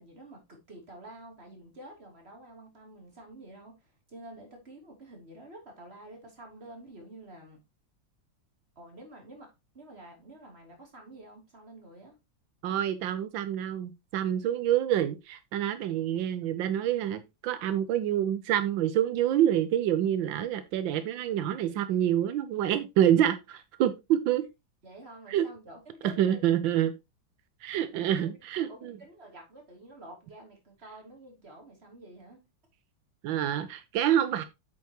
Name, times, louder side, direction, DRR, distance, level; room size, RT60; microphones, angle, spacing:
voice 1, 0.0-7.6 8.7-12.1 24.8-26.4 27.9-28.4 28.7-32.4, right 1 dB, 30° right, 3.2 m, -49 dB
voice 2, 12.6-24.4 25.3-25.5 26.2-26.9 27.6-29.0 33.2-34.4, right 11 dB, 85° right, 1.5 m, -27 dB
8.4 x 7.0 x 2.9 m
omnidirectional pair, 2.0 m